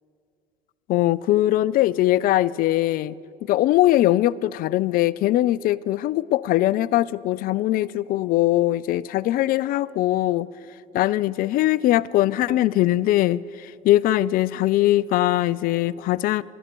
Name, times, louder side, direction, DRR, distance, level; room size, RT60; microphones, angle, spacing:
voice 1, 0.9-3.1 3.4-10.5 10.9-16.4, left 15 dB, 55° left, 0.4 m, -21 dB
25.0 x 12.0 x 3.0 m
supercardioid pair, 75°, 18 cm